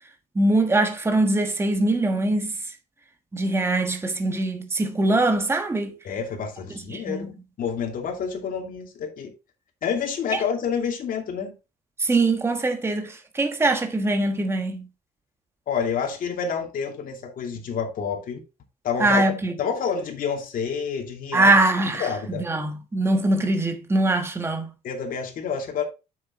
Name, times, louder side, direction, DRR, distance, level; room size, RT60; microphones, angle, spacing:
voice 1, 0.3-2.6 3.3-5.9 6.9-7.3 10.3-10.4 12.0-14.8 19.0-19.5 21.3-22.1 22.4-24.7, right 2 dB, 15° right, 1.3 m, -22 dB
voice 2, 6.0-9.3 9.8-11.6 15.7-18.4 18.8-19.3 19.6-21.5 22.0-22.5 24.8-25.8, left 6 dB, 55° left, 2.5 m, -28 dB
7.7 x 6.6 x 3.7 m
cardioid pair, 110°, 17 cm